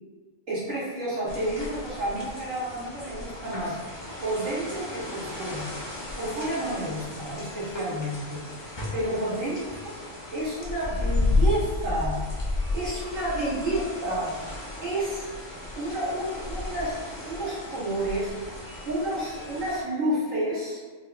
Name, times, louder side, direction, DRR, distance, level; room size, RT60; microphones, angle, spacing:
voice 1, 0.5-5.7 6.2-9.6 10.3-14.3 14.8-15.3 15.7-18.3 18.9-20.9, right 1 dB, 85° right, -10 dB, 1.9 m, -30 dB
sound 1, 1.3-19.8, left 2 dB, 35° left, 0.4 m, -33 dB
4.6 x 2.3 x 2.2 m, 1.4 s
omnidirectional pair, 1.3 m